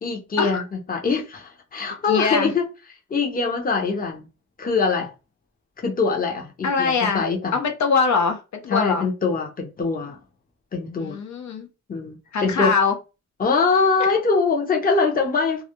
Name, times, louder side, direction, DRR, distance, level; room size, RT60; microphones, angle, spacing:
voice 1, 0.0-2.6 3.1-4.3 4.6-5.1 5.8-7.6 8.7-10.2 10.7-11.2 11.9-12.7 13.4-15.6, left 4 dB, 30° left, 0.6 m, -23 dB
voice 2, 2.1-2.5 6.6-7.2 7.5-9.1 10.9-11.7 12.3-12.9, left 5 dB, 70° left, 0.5 m, -22 dB
2.3 x 2.1 x 2.8 m
wide cardioid pair, 130°, 29 cm